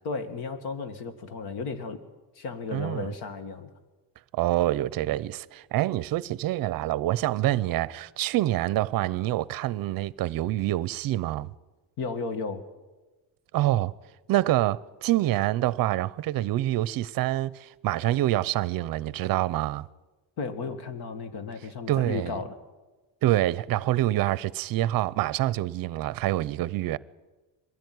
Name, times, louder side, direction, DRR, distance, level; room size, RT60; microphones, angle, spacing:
voice 1, 0.0-2.0 2.4-3.7 12.0-12.6 20.4-22.6, left 4 dB, 60° left, 2.0 m, -34 dB
voice 2, 2.7-3.1 4.3-11.5 13.5-13.9 14.3-19.8 21.9-22.4 23.2-27.0, right 15 dB, 55° right, 0.6 m, -26 dB
22.0 x 15.5 x 9.5 m
cardioid pair, 180°, 43 cm